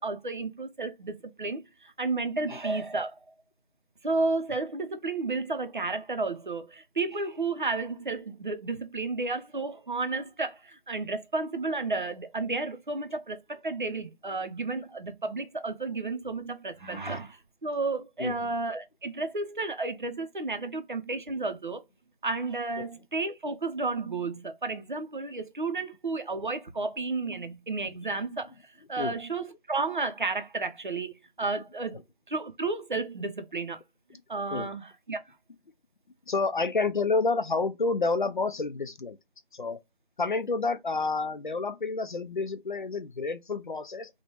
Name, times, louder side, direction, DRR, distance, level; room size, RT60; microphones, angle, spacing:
voice 1, 0.0-3.2 4.0-21.8 22.2-32.0 32.3-33.8 34.3-35.2, right 3 dB, 55° right, 0.5 m, -32 dB
voice 2, 36.3-39.2 39.5-39.8 40.2-44.2, left 3 dB, 55° left, 0.4 m, -29 dB
3.1 x 2.1 x 2.8 m
figure-of-eight pair, 165°, 29 cm